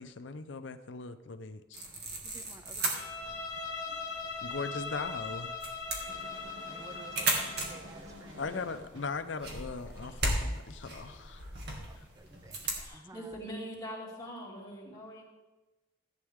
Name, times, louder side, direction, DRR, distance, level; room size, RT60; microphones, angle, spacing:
voice 1, 0.0-1.9 4.4-5.5 8.4-11.4, left 4 dB, 70° left, 10 dB, 0.6 m, -39 dB
sound 1, 1.7-12.9, right 2 dB, 55° right, 2.1 m, -37 dB
voice 2, 2.2-3.4 6.7-8.5 11.9-13.4, right 1 dB, 15° right, 9 dB, 0.4 m, -53 dB
Bowed string instrument, 2.9-7.8, left 4 dB, 40° left, 2.5 m, -40 dB
voice 3, 3.9-4.2 4.5-4.6 6.0-6.3 12.8-15.2, equal, 20° left, -4 dB, 2.7 m, -44 dB
sound 2, 6.1-9.2, equal, 75° right, 2.0 m, -50 dB
14.5 x 9.1 x 3.6 m, 1.1 s
head